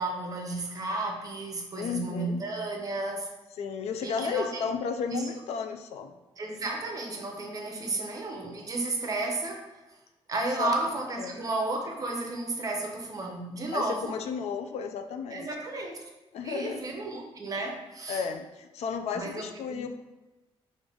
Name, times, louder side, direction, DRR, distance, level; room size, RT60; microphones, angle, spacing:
voice 1, 0.0-3.3 4.0-4.6 5.1-5.3 6.4-9.7 10.3-14.2 15.3-16.0 16.4-18.2 19.1-19.9, right 2 dB, 35° right, 2 dB, 0.7 m, -33 dB
voice 2, 1.8-2.4 3.6-6.2 7.8-8.1 10.6-10.7 11.2-11.4 13.7-15.5 16.3-16.8 18.1-19.9, left 6 dB, 80° left, 7 dB, 0.4 m, -33 dB
5.1 x 2.6 x 3.5 m, 1.1 s
cardioid pair, 130°, 11 cm